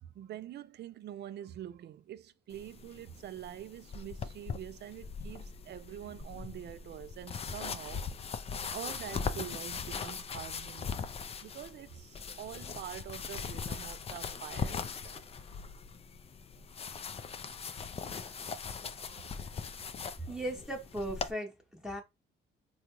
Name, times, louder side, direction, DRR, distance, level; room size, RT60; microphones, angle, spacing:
voice 1, 0.0-8.1 8.7-10.9 11.4-15.2 18.1-19.5, right 11 dB, 60° right, 0.4 m, -46 dB
sound 1, 2.5-21.3, left 6 dB, 30° left, 0.4 m, -40 dB
voice 2, 20.2-22.0, right 1 dB, 5° right, 0.8 m, -37 dB
3.7 x 2.3 x 2.9 m
cardioid pair, 90°, 20 cm